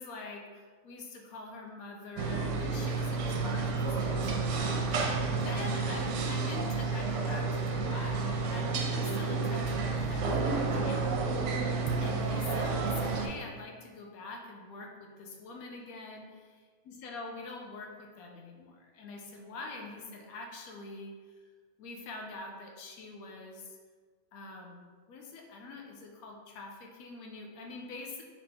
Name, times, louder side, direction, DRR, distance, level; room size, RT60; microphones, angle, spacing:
voice 1, 0.0-5.2 5.4-11.1 12.0-16.4 16.9-21.1 21.8-23.8 24.3-28.2, left 3 dB, 85° left, 1 dB, 1.2 m, -45 dB
sound 1, 2.2-13.3, right 4 dB, 70° right, 0.8 m, -30 dB
4.0 x 3.2 x 3.4 m, 1.5 s
omnidirectional pair, 1.5 m